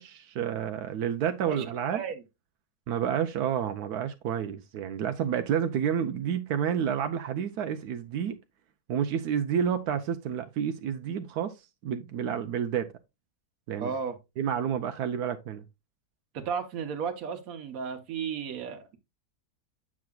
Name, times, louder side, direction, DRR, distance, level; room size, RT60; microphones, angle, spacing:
voice 1, 0.0-2.0 2.9-8.4 8.9-11.6 11.8-12.9 13.7-13.9 14.4-15.6, right 8 dB, 85° right, 1.2 m, -29 dB
voice 2, 1.4-2.2 13.8-14.2 16.3-19.0, right 6 dB, 65° right, 1.4 m, -34 dB
8.5 x 6.1 x 2.3 m
omnidirectional pair, 1.6 m